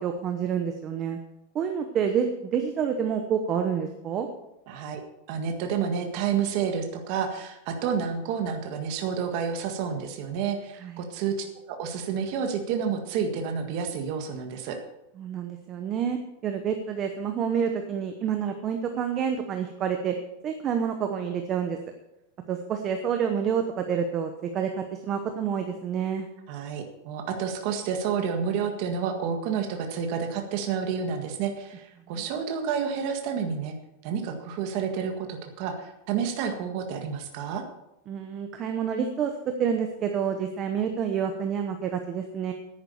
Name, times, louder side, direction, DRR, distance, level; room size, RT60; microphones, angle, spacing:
voice 1, 0.0-1.2 1.5-4.3 10.8-10.9 15.2-20.1 20.4-21.8 22.5-26.3 32.1-32.2 38.1-42.5, right 7 dB, 20° right, 5 dB, 0.9 m, -28 dB
voice 2, 4.7-5.0 5.3-11.4 11.7-14.8 26.5-33.7 34.0-37.6, right 7 dB, 40° right, 4 dB, 1.7 m, -30 dB
10.5 x 9.5 x 7.0 m, 0.88 s
supercardioid pair, 180°, 0 cm